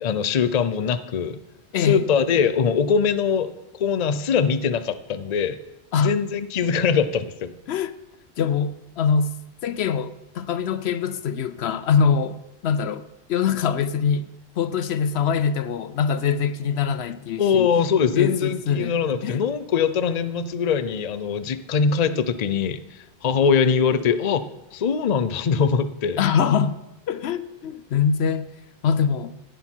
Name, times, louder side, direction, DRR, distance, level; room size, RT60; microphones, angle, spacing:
voice 1, 0.0-1.4 1.8-3.5 3.8-5.6 6.0-7.5 17.4-26.2, left 6 dB, 45° left, 0.6 m, -22 dB
voice 2, 1.7-2.1 5.9-6.1 7.7-7.9 8.4-9.4 9.6-14.3 14.6-17.7 18.1-19.4 26.2-26.8 27.1-28.5 28.8-29.3, left 6 dB, 75° left, 0.8 m, -23 dB
16.0 x 9.7 x 4.5 m
omnidirectional pair, 1.1 m